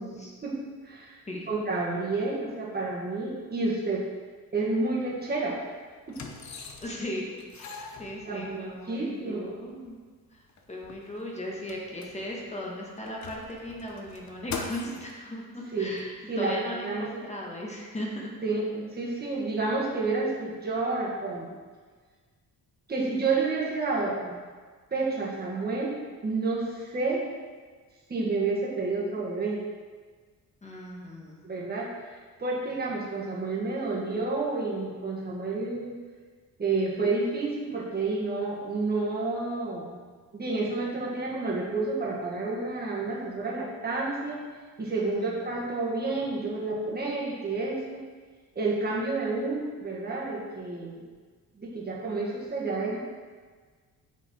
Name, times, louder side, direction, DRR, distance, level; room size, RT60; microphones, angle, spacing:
voice 1, 0.0-1.2 1.5-4.0 4.5-5.6 6.1-6.2 8.3-9.5 15.7-16.0 16.3-17.1 18.4-21.6 22.9-24.4 24.9-27.2 28.1-29.6 31.4-31.9 32.4-35.9 36.6-40.0 40.3-44.4 44.8-48.0 48.5-51.1 51.6-53.0, right 3 dB, 25° right, -4 dB, 1.7 m, -30 dB
sound 1, 5.2-5.4 6.1-7.1 7.4-8.7 9.5-9.6 9.9-10.0 10.4-12.5 13.0-15.2 16.0-16.1, left 5 dB, 50° left, 0.8 m, -42 dB
voice 2, 6.8-7.7 8.0-10.0 10.3-10.4 10.7-18.3 30.6-31.4 44.9-45.4, left 1 dB, 20° left, -2 dB, 1.4 m, -37 dB
8.8 x 5.7 x 4.4 m, 1.5 s
wide cardioid pair, 170°, 37 cm